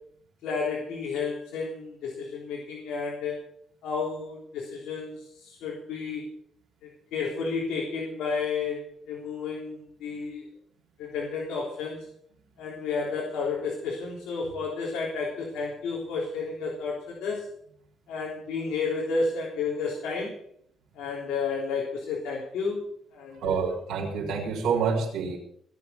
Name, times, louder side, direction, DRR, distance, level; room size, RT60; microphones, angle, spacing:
voice 1, 0.4-3.4 3.8-6.3 6.8-10.4 11.0-12.1 12.6-17.5 18.1-20.4 21.0-22.8 23.1-23.6, left 4 dB, 85° left, -3 dB, 3.7 m, -31 dB
voice 2, 23.4-25.4, right 6 dB, 90° right, -4 dB, 4.0 m, -27 dB
20.5 x 7.1 x 7.0 m, 0.67 s
cardioid pair, 90°, 0 cm